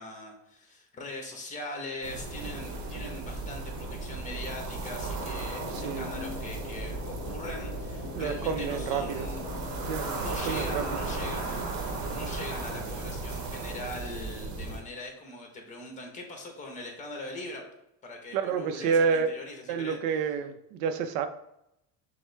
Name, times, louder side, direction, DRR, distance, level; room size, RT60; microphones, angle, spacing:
voice 1, 0.0-9.5 10.1-17.6 18.0-20.0, left 2 dB, 20° left, 2 dB, 1.0 m, -41 dB
sound 1, 2.0-14.8, right 3 dB, 50° right, 0.9 m, -35 dB
sound 2, 5.2-11.4, left 7 dB, 85° left, 0.5 m, -43 dB
voice 2, 5.7-6.1 8.1-9.3 9.9-10.1 10.4-10.9 18.3-19.3 19.7-21.3, right 6 dB, 70° right, 10 dB, 0.5 m, -29 dB
6.1 x 2.1 x 3.3 m, 0.82 s
supercardioid pair, 120°, 37 cm